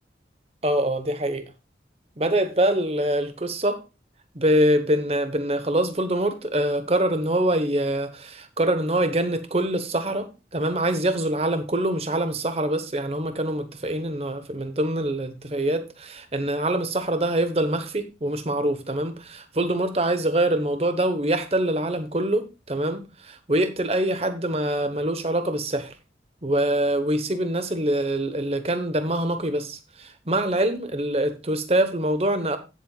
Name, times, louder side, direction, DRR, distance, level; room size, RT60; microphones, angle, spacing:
voice 1, 0.6-1.5 2.2-3.8 4.3-25.9 26.4-32.6, right 1 dB, 35° right, 1.1 m, -24 dB
16.0 x 7.3 x 2.4 m
head